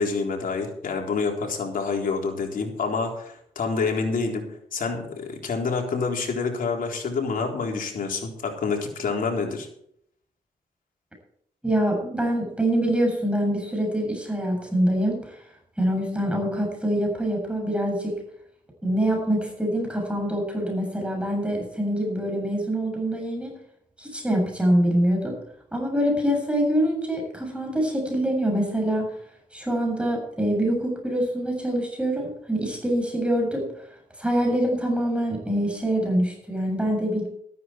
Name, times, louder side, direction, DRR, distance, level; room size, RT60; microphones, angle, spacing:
voice 1, 0.0-9.7, left 4 dB, 65° left, 2 dB, 4.0 m, -27 dB
voice 2, 11.6-15.2 15.8-18.1 18.8-23.6 24.0-25.4 25.7-29.1 29.5-33.7 34.2-37.3, right 1 dB, 5° right, 1 dB, 7.4 m, -25 dB
13.5 x 12.5 x 4.6 m, 0.70 s
cardioid pair, 70°, 15 cm